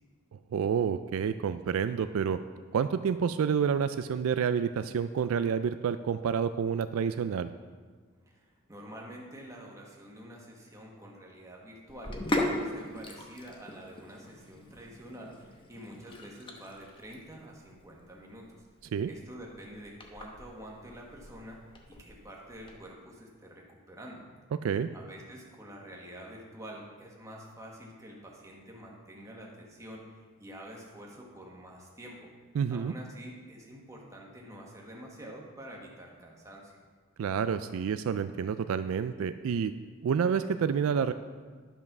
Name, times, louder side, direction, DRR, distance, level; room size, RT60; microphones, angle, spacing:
voice 1, 0.3-2.4 2.7-7.5 18.9-19.1 24.6-24.9 32.6-32.9 37.2-39.7 40.0-41.1, right 7 dB, 70° right, 11 dB, 0.3 m, -29 dB
voice 2, 8.2-18.7 19.0-21.6 21.9-24.2 24.9-30.0 30.4-32.3 32.7-36.8, equal, 15° right, -2 dB, 1.4 m, -47 dB
Sink (filling or washing), 11.9-22.7, left 1 dB, 20° left, 0.9 m, -39 dB
10.5 x 5.4 x 6.0 m, 1.5 s
head